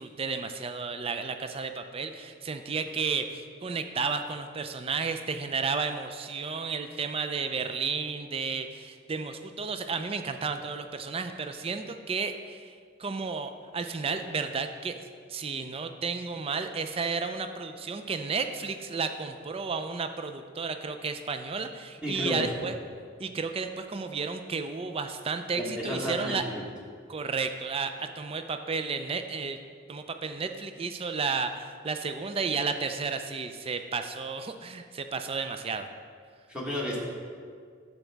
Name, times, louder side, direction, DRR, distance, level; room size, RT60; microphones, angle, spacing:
voice 1, 0.0-12.7 13.0-22.8 23.2-26.5 27.1-29.6 29.9-35.9, right 5 dB, 30° right, 8 dB, 0.4 m, -32 dB
voice 2, 22.0-22.4 25.5-26.6 36.5-37.0, left 1 dB, 5° right, -4 dB, 1.3 m, -32 dB
10.0 x 7.2 x 3.4 m, 2.1 s
head